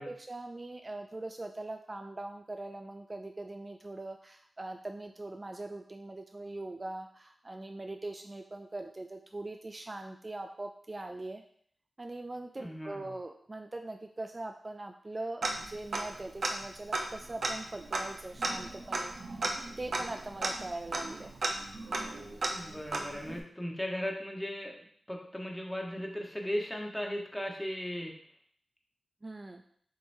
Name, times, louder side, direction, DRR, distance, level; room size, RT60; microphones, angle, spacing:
voice 1, 0.0-11.4 12.0-19.4 19.8-21.4 29.2-29.6, right 2 dB, 40° right, 5 dB, 0.3 m, -41 dB
voice 2, 12.6-13.1 22.4-24.8 25.1-28.2, equal, 10° left, 0 dB, 1.1 m, -37 dB
Tick-tock, 15.4-16.2 16.4-16.5 16.9-23.4, right 2 dB, 70° right, 0.6 m, -35 dB
6.5 x 2.9 x 2.7 m, 0.62 s
cardioid pair, 45°, 0 cm